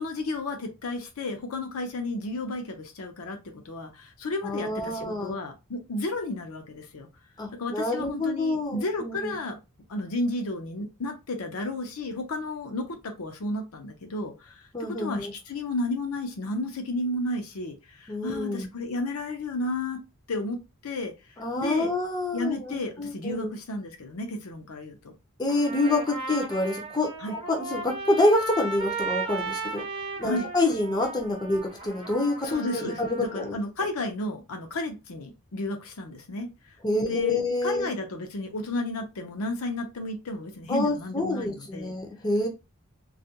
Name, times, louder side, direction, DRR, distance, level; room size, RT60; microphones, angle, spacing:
voice 1, 0.0-7.1 7.6-9.6 9.9-20.0 20.3-21.1 21.5-21.9 22.3-25.1 27.2-27.4 30.2-30.5 32.4-36.5 36.9-41.9, left 2 dB, 80° left, 4 dB, 0.6 m, -32 dB
voice 2, 4.4-5.4 7.4-9.3 14.7-15.3 18.1-18.7 21.4-23.5 25.4-29.8 30.2-32.5 32.7-33.6 36.8-37.9 40.7-42.5, left 2 dB, 20° left, 1 dB, 0.5 m, -27 dB
Trumpet, 25.5-33.5, right 3 dB, 25° right, 0.6 m, -36 dB
2.4 x 2.2 x 2.7 m, 0.26 s
head